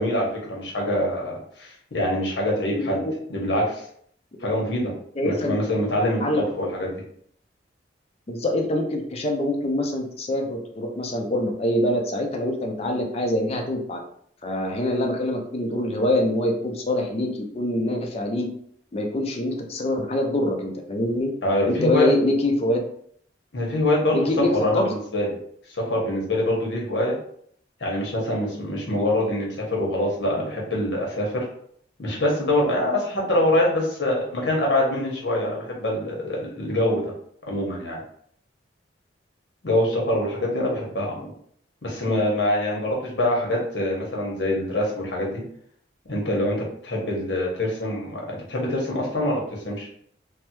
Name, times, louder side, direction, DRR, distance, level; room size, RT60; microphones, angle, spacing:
voice 1, 0.0-3.0 3.3-3.8 4.4-4.9 5.2-7.0 21.4-22.1 23.5-24.2 24.5-25.3 25.7-27.2 27.8-31.4 32.0-37.1 37.5-38.0 39.6-41.3 41.8-45.4 46.0-49.9, left 1 dB, 75° left, -2 dB, 1.0 m, -24 dB
voice 2, 2.7-3.1 5.2-5.6 6.2-6.4 8.3-14.0 14.4-18.5 18.9-21.3 21.7-22.8 24.1-24.9, left 1 dB, 35° left, 2 dB, 0.5 m, -24 dB
3.4 x 2.1 x 2.9 m, 0.64 s
head